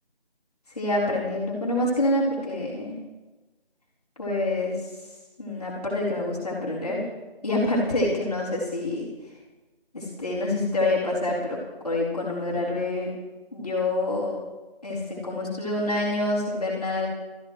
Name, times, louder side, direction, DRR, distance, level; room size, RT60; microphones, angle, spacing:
voice 1, 0.7-3.0 4.2-4.8 5.4-7.1 7.4-9.1 9.9-11.6 11.8-13.1 13.5-14.4 14.8-17.1, left 2 dB, 35° left, -5 dB, 4.4 m, -26 dB
25.0 x 15.0 x 3.3 m, 1.2 s
figure-of-eight pair, 180°, 32 cm